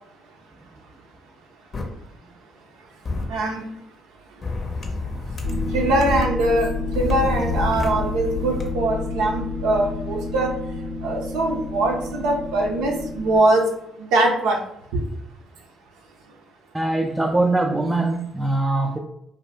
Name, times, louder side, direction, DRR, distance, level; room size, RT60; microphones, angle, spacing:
sound 1, 1.7-1.8 3.0-3.2 4.4-6.2 6.9-8.7, left 3 dB, 45° left, 0.6 m, -29 dB
voice 1, 3.3-3.6 5.7-10.5 11.0-13.7 14.1-14.6 14.9-15.0, right 2 dB, 80° right, 1 dB, 0.4 m, -22 dB
sound 2, 5.4-13.4, left 3 dB, 75° left, 0.9 m, -29 dB
voice 2, 16.7-19.0, right 2 dB, 15° right, 3 dB, 0.3 m, -22 dB
2.5 x 2.0 x 3.2 m, 0.79 s
hypercardioid pair, 55°, 0 cm